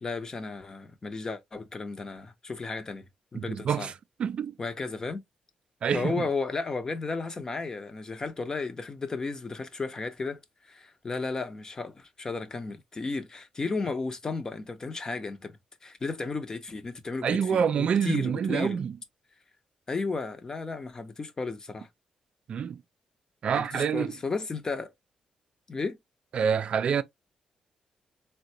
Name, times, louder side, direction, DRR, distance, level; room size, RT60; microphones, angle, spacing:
voice 1, 0.0-3.0 3.3-3.9 4.6-5.2 5.9-15.6 15.8-18.8 19.9-21.9 23.5-24.9 25.7-26.0, left 3 dB, 30° left, 0.7 m, -34 dB
voice 2, 3.3-3.9 4.2-4.6 5.8-6.2 17.2-19.0 22.5-22.8 23.4-24.2 26.3-27.0, right 7 dB, 60° right, 0.4 m, -27 dB
3.7 x 2.2 x 2.7 m
cardioid pair, 100°, 2 cm